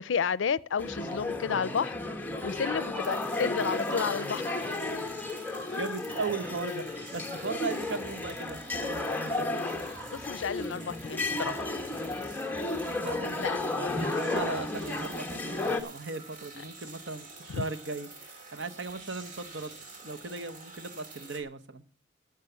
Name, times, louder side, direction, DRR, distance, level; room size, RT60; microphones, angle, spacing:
voice 1, 0.0-2.0 2.4-4.5 5.7-5.8 10.1-11.7 13.4-13.6 17.5-17.6, left 6 dB, 80° left, 0.5 m, -31 dB
sound 1, 0.8-15.8, left 2 dB, 10° left, 1.2 m, -33 dB
sound 2, 3.0-21.4, right 3 dB, 45° right, 2.2 m, -49 dB
sound 3, 3.9-9.0, left 1 dB, 25° right, 4.0 m, -53 dB
voice 2, 5.7-9.6 13.0-21.8, right 4 dB, 70° right, 1.2 m, -38 dB
14.5 x 6.5 x 6.8 m
head